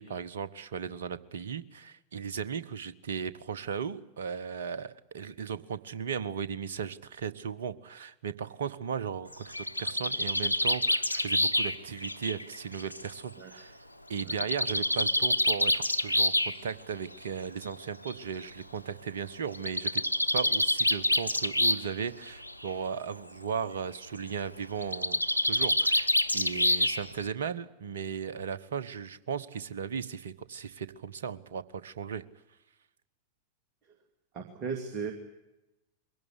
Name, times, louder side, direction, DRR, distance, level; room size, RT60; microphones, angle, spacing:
voice 1, 0.0-9.5 9.8-13.8 14.1-20.0 20.3-32.2, right 7 dB, 60° right, 14 dB, 1.1 m, -36 dB
Bird, 9.3-13.1 14.2-16.5 17.6-17.7 18.1-18.2 18.4-18.5 19.5-22.0 22.3-22.7 24.8-27.2, left 1 dB, 90° right, 0.9 m, -27 dB
voice 2, 34.3-35.1, right 5 dB, 35° right, 4 dB, 2.6 m, -36 dB
23.0 x 17.5 x 9.8 m, 0.97 s
figure-of-eight pair, 90°, 0 cm